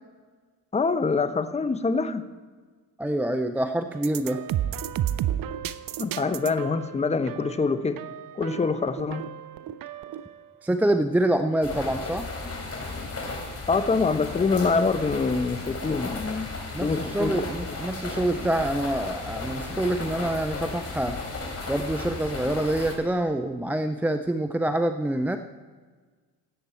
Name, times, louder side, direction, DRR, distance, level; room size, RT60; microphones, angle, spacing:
voice 1, 0.7-2.2 6.0-8.0 8.4-9.2 13.7-16.5 16.8-17.8, left 4 dB, 15° left, 11 dB, 0.8 m, -25 dB
voice 2, 3.0-4.4 10.6-12.3 16.7-21.2 21.7-25.4, right 1 dB, 5° right, 8 dB, 0.3 m, -26 dB
sound 1, 3.9-10.4, right 11 dB, 45° right, 0.7 m, -32 dB
sound 2, 11.6-22.9, left 3 dB, 30° left, 3.2 m, -35 dB
17.0 x 8.1 x 4.4 m, 1.5 s
hypercardioid pair, 70°, 49 cm